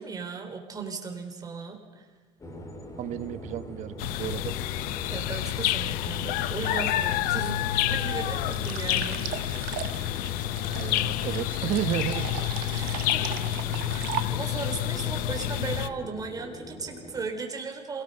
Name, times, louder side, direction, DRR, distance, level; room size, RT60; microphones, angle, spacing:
voice 1, 0.0-2.1 5.1-7.6 7.9-9.3 12.7-13.4 13.9-18.0, right 5 dB, 25° right, 3 dB, 4.0 m, -36 dB
sound 1, 2.4-17.3, left 1 dB, 20° left, 3.1 m, -44 dB
voice 2, 2.9-4.5 10.7-12.4, right 11 dB, 55° right, 13 dB, 1.1 m, -32 dB
sound 2, 4.0-15.9, left 13 dB, 75° left, 0.7 m, -29 dB
sound 3, 8.5-14.7, right 13 dB, 80° right, 1.3 m, -38 dB
27.5 x 18.5 x 5.6 m, 1.5 s
cardioid pair, 115°, 15 cm